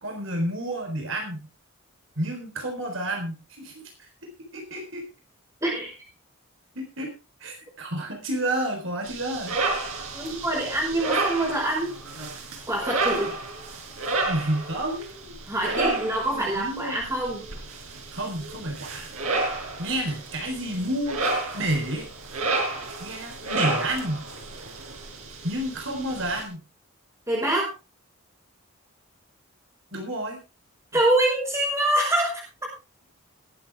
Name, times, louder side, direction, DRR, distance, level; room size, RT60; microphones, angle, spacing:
voice 1, 0.0-1.5 2.2-3.8 4.5-5.0 6.8-7.1 7.4-9.6 13.3-13.4 14.2-15.4 15.6-16.0 16.3-16.9 18.1-19.1 19.8-21.2 21.5-22.1 23.0-24.2 25.4-26.6 29.9-30.4, right 1 dB, 65° right, 3 dB, 3.9 m, -30 dB
voice 2, 5.6-5.9 10.1-11.9 12.7-13.3 15.5-17.4 27.3-27.7 30.9-32.4, right 1 dB, 15° right, -5 dB, 5.3 m, -25 dB
sound 1, 9.0-26.4, right 3 dB, 90° right, 5.0 m, -31 dB
21.0 x 8.7 x 3.5 m, 0.29 s
head